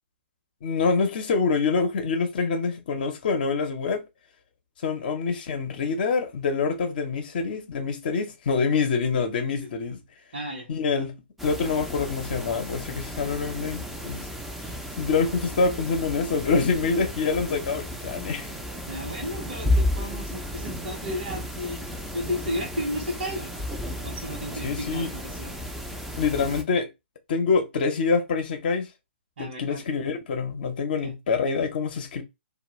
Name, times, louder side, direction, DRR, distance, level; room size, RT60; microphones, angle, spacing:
voice 1, 0.6-4.0 4.8-10.0 10.7-11.1 11.4-14.3 14.6-18.5 24.6-25.1 26.2-26.9 27.3-28.9 29.4-32.2, left 4 dB, 55° left, 0.6 m, -26 dB
voice 2, 10.3-10.7 18.9-23.6 24.0-25.5 29.4-29.8 31.0-31.1, equal, 55° right, 0.8 m, -33 dB
sound 1, 11.4-26.6, left 1 dB, ahead, 0.4 m, -33 dB
2.2 x 2.0 x 3.0 m
figure-of-eight pair, 125°, 6 cm